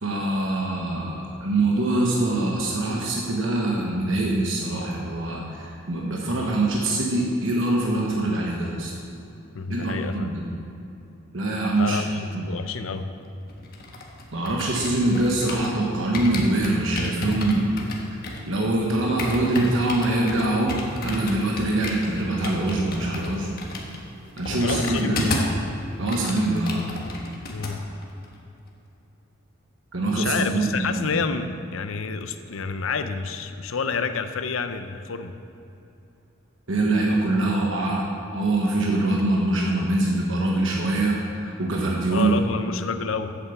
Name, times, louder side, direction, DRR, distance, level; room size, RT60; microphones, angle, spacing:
voice 1, 0.0-8.9 9.7-10.4 11.3-12.0 12.3-12.5 14.3-17.7 18.1-18.2 18.5-23.5 24.4-25.4 26.0-26.9 29.9-31.2 36.7-38.0 38.3-42.4, right 2 dB, 65° right, -2 dB, 1.2 m, -24 dB
voice 2, 9.5-10.3 11.7-13.1 24.5-25.2 27.5-27.9 30.1-35.4 42.1-43.4, left 5 dB, 75° left, 9 dB, 0.6 m, -29 dB
sound 1, 13.5-15.8 16.1-25.6 25.9-27.7 28.0-28.3, left 1 dB, 45° left, 1.4 m, -32 dB
8.4 x 7.9 x 7.1 m, 2.9 s
head